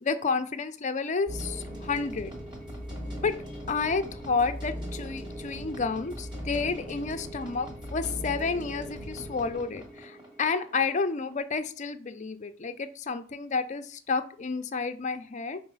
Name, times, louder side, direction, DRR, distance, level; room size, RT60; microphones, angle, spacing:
voice 1, 0.0-2.3 3.2-3.4 3.7-15.6, left 4 dB, 40° left, 9 dB, 0.5 m, -30 dB
sound 1, 1.3-11.4, equal, 25° right, 1.5 m, -39 dB
4.8 x 4.0 x 5.5 m, 0.43 s
head